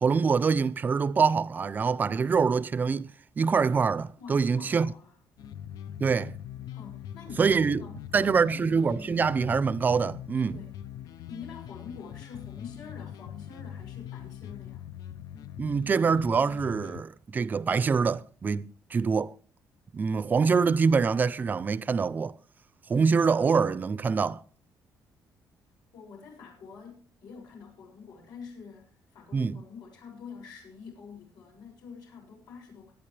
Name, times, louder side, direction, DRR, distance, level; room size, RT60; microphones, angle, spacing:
voice 1, 0.0-4.9 6.0-6.3 7.4-7.8 8.1-10.6 15.6-18.7 18.9-19.3 19.9-22.3 22.9-24.4 29.3-29.6, right 5 dB, 25° right, 0.6 m, -25 dB
voice 2, 4.2-5.2 6.7-8.4 10.5-10.8 11.3-14.9 22.9-23.2 25.9-32.9, left 6 dB, 80° left, 7.0 m, -46 dB
sound 1, 5.4-17.0, left 10 dB, 65° left, 0.7 m, -42 dB
23.5 x 9.4 x 3.4 m
cardioid pair, 165°, 7 cm